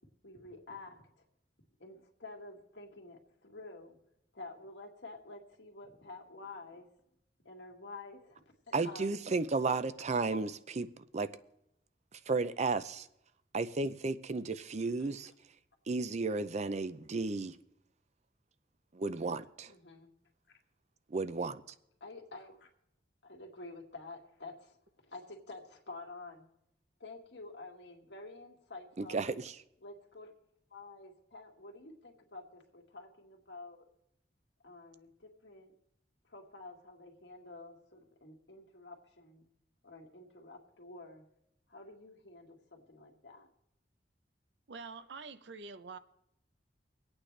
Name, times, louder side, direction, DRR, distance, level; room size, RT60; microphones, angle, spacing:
voice 1, 0.2-1.0 1.8-4.0 4.3-6.9 7.4-8.4 8.7-9.1 10.2-10.4 15.0-15.1 19.7-20.1 20.5-20.6 22.0-22.7 23.2-24.8 25.1-26.5 27.0-29.2 29.8-30.3 30.7-33.8 34.6-35.7 36.3-39.5 39.8-41.2 41.7-43.5, left 3 dB, 85° left, 2.0 m, -49 dB
voice 2, 8.7-11.3 12.3-13.1 13.5-15.3 15.9-17.5 18.9-19.7 21.1-21.6 29.0-29.5, right 3 dB, 40° right, 0.5 m, -33 dB
voice 3, 44.7-46.0, right 4 dB, 75° right, 0.7 m, -46 dB
25.5 x 8.8 x 3.3 m
head